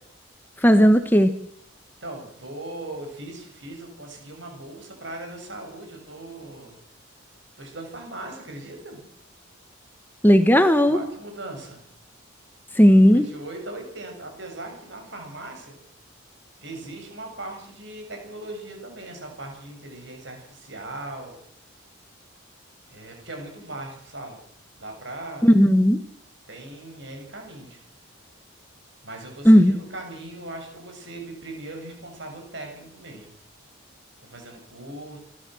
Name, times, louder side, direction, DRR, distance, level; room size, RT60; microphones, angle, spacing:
voice 1, 0.6-1.3 10.2-11.0 12.8-13.3 25.4-26.0 29.4-29.7, equal, 10° left, 9 dB, 1.1 m, -15 dB
voice 2, 2.0-6.8 7.6-9.0 10.9-11.8 13.1-15.7 16.6-21.4 22.9-24.4 24.8-25.6 26.5-27.8 29.0-33.3 34.2-35.2, right 2 dB, 60° right, 3 dB, 7.3 m, -39 dB
28.0 x 13.0 x 7.7 m, 0.72 s
head